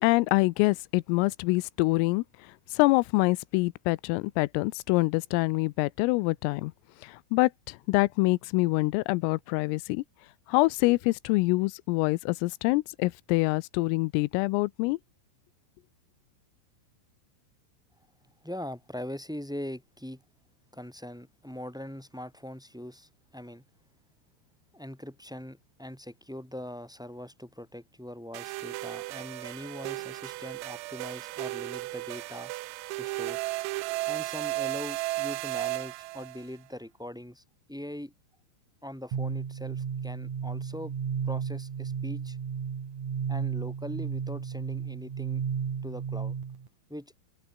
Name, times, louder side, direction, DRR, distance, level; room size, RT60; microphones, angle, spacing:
voice 1, 0.0-2.2 2.7-6.7 7.0-10.0 10.5-15.0, left 23 dB, 90° left, 3.3 m, -25 dB
voice 2, 18.4-20.2 20.7-23.6 24.7-32.5 33.0-33.4 34.1-37.4 37.7-38.1 38.8-40.9 41.2-42.4 43.3-45.4 45.8-46.4 46.9-47.1, left 1 dB, ahead, 6.8 m, -41 dB
sound 1, 28.3-36.4, right 22 dB, 90° right, 3.4 m, -34 dB
sound 2, 39.1-46.7, right 7 dB, 40° right, 3.7 m, -33 dB
omnidirectional pair, 5.8 m